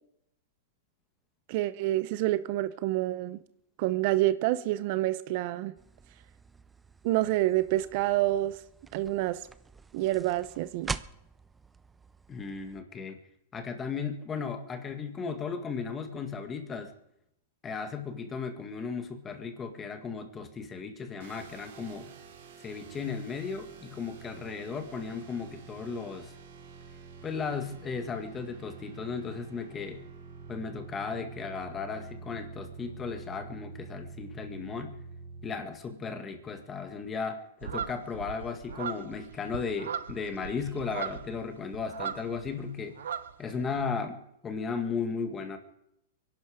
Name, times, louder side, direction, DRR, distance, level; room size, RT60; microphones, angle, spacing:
voice 1, 1.5-3.4 3.8-5.7 7.0-8.6 8.9-9.4 9.9-10.9, right 16 dB, 45° right, 0.7 m, -28 dB
sound 1, 5.8-12.8, right 4 dB, 10° right, 0.5 m, -44 dB
voice 2, 12.3-13.2 13.5-16.9 17.6-22.1 22.6-26.3 27.2-30.0 30.5-35.0 35.4-43.0 43.4-45.6, left 5 dB, 20° left, 1.8 m, -35 dB
sound 2, 21.2-35.5, right 4 dB, 65° right, 4.3 m, -47 dB
sound 3, 37.6-42.6 42.8-43.8, right 8 dB, 85° right, 1.0 m, -38 dB
23.5 x 11.5 x 5.1 m
hypercardioid pair, 145°, 0 cm